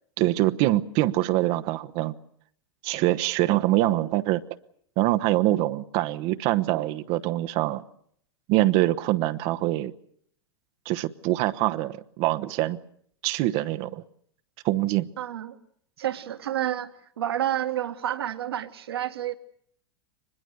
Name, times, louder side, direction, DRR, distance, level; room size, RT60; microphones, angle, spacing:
voice 1, 0.2-2.1 2.8-4.4 5.0-7.8 8.5-9.9 10.8-12.8 13.2-14.0 14.6-15.1, right 16 dB, 45° right, 1.0 m, -24 dB
voice 2, 15.2-15.6 16.0-16.9 17.2-19.4, right 11 dB, 70° right, 1.9 m, -29 dB
24.0 x 21.0 x 8.1 m
figure-of-eight pair, 95°, 13 cm